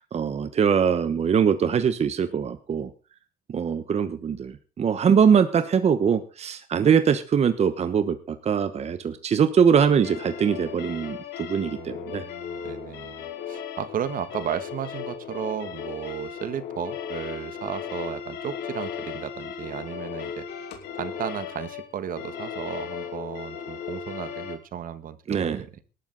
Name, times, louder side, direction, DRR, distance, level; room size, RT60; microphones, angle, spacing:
voice 1, 0.0-2.9 3.5-12.2 25.3-25.6, right 7 dB, 40° right, 1.1 m, -22 dB
sound 1, 10.0-24.6, left 8 dB, 80° left, 4.1 m, -36 dB
voice 2, 11.6-20.5 20.9-25.8, right 9 dB, 55° right, 1.6 m, -34 dB
19.0 x 12.5 x 4.0 m
cardioid pair, 110°, 17 cm